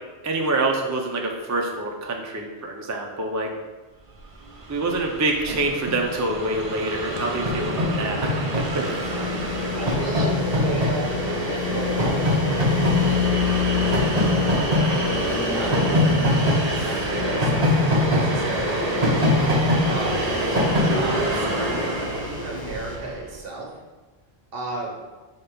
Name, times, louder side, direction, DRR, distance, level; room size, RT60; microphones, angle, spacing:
voice 1, 0.2-3.5 4.7-8.4 8.7-9.1, right 2 dB, 20° right, 1 dB, 0.5 m, -26 dB
Train, 4.5-4.6 4.7-23.2, equal, 40° right, 1.0 m, -23 dB
sound 1, 7.2-23.0, left 8 dB, 65° left, 1.0 m, -31 dB
voice 2, 9.7-13.2 14.8-19.1 19.8-23.7 24.5-24.9, right 2 dB, 65° right, -1 dB, 1.3 m, -33 dB
4.4 x 4.3 x 5.1 m, 1.2 s
omnidirectional pair, 1.1 m